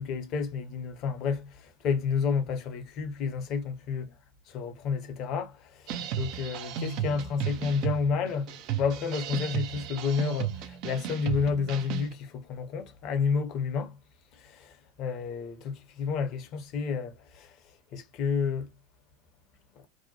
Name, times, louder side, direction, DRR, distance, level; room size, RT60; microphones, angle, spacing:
voice 1, 0.0-4.1 4.5-14.0 14.4-17.5 17.9-18.7, left 5 dB, 45° left, 0.7 m, -30 dB
sound 1, 5.9-12.1, right 10 dB, 50° right, 0.4 m, -34 dB
2.7 x 2.1 x 2.7 m
figure-of-eight pair, 80°, 0 cm